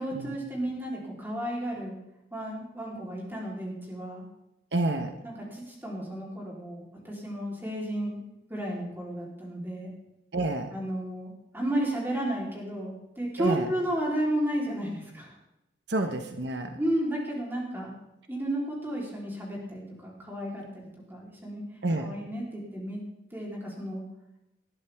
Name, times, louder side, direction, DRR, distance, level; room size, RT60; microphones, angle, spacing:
voice 1, 0.0-1.9 2.3-4.2 5.2-8.2 8.5-9.9 10.7-15.3 16.8-17.9 18.3-21.6 22.0-23.0 23.3-24.0, right 1 dB, 10° right, -3 dB, 3.7 m, -33 dB
voice 2, 4.7-5.1 10.3-10.7 13.4-13.7 15.9-16.8 21.8-22.1, right 2 dB, 70° right, 6 dB, 1.1 m, -28 dB
19.0 x 12.0 x 3.6 m, 0.87 s
head